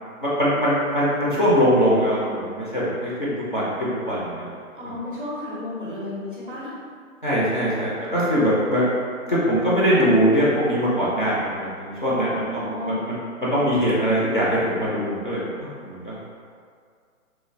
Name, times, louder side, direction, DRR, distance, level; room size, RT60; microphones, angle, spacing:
voice 1, 0.2-4.4 7.2-8.8 9.3-16.1, equal, 40° left, -8 dB, 0.4 m, -22 dB
voice 2, 4.7-6.7 12.1-13.0, left 2 dB, 40° right, -7 dB, 0.4 m, -33 dB
2.9 x 2.1 x 2.5 m, 2.1 s
hypercardioid pair, 170°, 42 cm